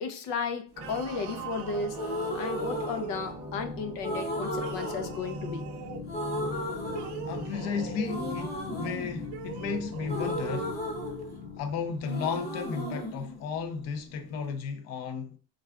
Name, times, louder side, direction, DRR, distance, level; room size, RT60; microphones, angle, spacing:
voice 1, 0.0-2.0 2.3-5.7 10.2-10.3, left 4 dB, 85° left, 0.7 m, -34 dB
sound 1, 0.7-3.5 4.5-6.1 6.8-8.4 9.2-10.7, right 8 dB, 65° right, 0.6 m, -42 dB
sound 2, 0.8-12.5, left 3 dB, 10° right, 0.7 m, -41 dB
sound 3, 1.9-3.6 4.0-5.8 6.1-7.7 8.0-11.7 12.0-14.1, equal, 25° left, 0.8 m, -35 dB
voice 2, 7.2-10.7 11.6-15.4, left 6 dB, 40° left, 0.4 m, -34 dB
3.3 x 2.4 x 3.5 m
cardioid pair, 170°, 42 cm